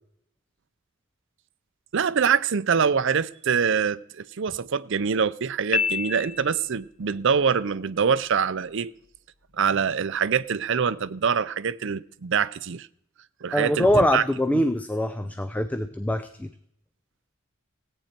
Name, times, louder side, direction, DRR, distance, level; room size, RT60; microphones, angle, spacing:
voice 1, 1.9-8.9 9.6-12.9 13.4-14.2 14.5-14.7, right 6 dB, 60° right, 0.5 m, -24 dB
Piano, 5.7-6.8, left 7 dB, 40° left, 0.7 m, -28 dB
voice 2, 13.5-16.5, left 1 dB, 5° left, 0.5 m, -23 dB
17.0 x 8.8 x 4.4 m
head